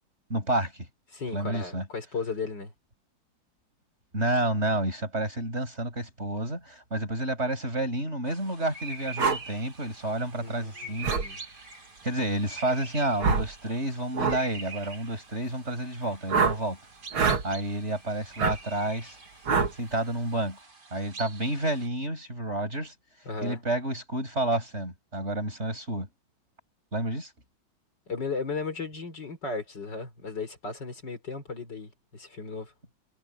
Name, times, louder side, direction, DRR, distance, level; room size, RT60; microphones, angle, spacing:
voice 1, 0.3-0.9 1.3-1.9 4.1-11.1 12.0-16.8 17.4-19.2 19.8-20.6 20.9-22.9 23.4-26.1 26.9-27.3, right 1 dB, 30° right, 7.1 m, -30 dB
voice 2, 1.1-2.7 10.4-11.4 23.2-23.6 28.1-32.7, left 4 dB, 60° left, 4.5 m, -35 dB
sound 1, 8.3-21.9, right 3 dB, 50° right, 4.3 m, -45 dB
sound 2, 9.2-9.4 11.0-11.3 13.2-13.5 14.1-14.4 16.3-16.6 17.1-17.4 18.4-18.6 19.5-19.7, right 5 dB, 90° right, 3.1 m, -24 dB
omnidirectional pair, 2.2 m